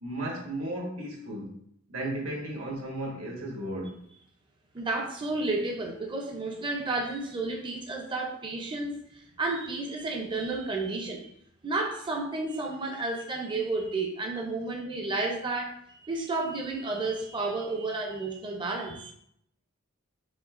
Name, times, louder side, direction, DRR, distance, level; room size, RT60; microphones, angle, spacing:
voice 1, 0.0-1.5 1.9-4.0, right 1 dB, 85° right, -1 dB, 1.2 m, -34 dB
voice 2, 4.7-11.3 11.6-19.1, right 3 dB, 20° right, 2 dB, 0.4 m, -32 dB
5.1 x 3.5 x 2.4 m, 0.69 s
head